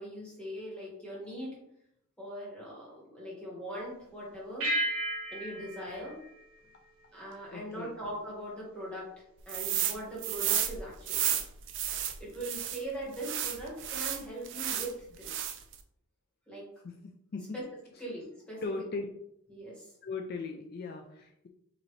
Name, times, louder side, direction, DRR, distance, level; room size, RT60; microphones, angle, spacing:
voice 1, 0.0-1.6 2.2-4.7 5.3-6.2 7.1-11.4 12.2-15.6 16.5-16.7 17.5-17.6 18.0-18.6 19.5-19.9, right 1 dB, 5° left, -6 dB, 1.6 m, -41 dB
sound 1, 4.6-7.4, right 1 dB, 75° right, 1.5 m, -35 dB
voice 2, 7.5-8.0 16.8-17.6 18.6-19.1 20.0-21.5, left 4 dB, 45° left, 3 dB, 0.4 m, -38 dB
sound 2, 9.5-10.0 10.2-12.8 13.2-14.9 15.2-15.8, right 11 dB, 60° right, 0.4 m, -32 dB
5.0 x 2.8 x 3.1 m, 0.77 s
head